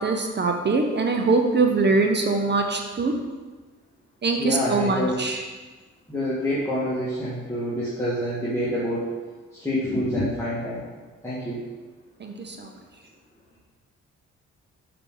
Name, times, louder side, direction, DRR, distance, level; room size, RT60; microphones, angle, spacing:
voice 1, 0.0-3.1 4.2-5.4 12.2-12.7, right 3 dB, 35° right, 3 dB, 0.9 m, -23 dB
voice 2, 4.4-5.3 6.1-9.1 9.5-10.9 11.2-11.6, equal, 10° left, -10 dB, 2.0 m, -27 dB
6.5 x 4.8 x 3.9 m, 1.3 s
cardioid pair, 70°, 29 cm